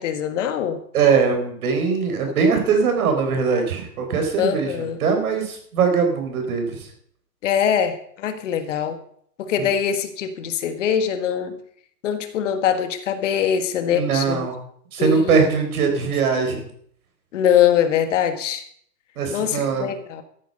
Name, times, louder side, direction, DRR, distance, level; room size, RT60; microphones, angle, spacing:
voice 1, 0.0-0.8 4.4-5.0 7.4-9.0 9.4-11.5 12.0-14.4 15.0-15.4 17.3-18.6 19.3-20.2, left 8 dB, 45° left, 9 dB, 1.6 m, -22 dB
voice 2, 0.9-6.9 9.6-9.7 13.9-14.6 14.9-16.6 19.2-19.9, right 5 dB, 60° right, 5 dB, 4.2 m, -21 dB
13.5 x 9.5 x 5.5 m, 0.63 s
hypercardioid pair, 160°, 49 cm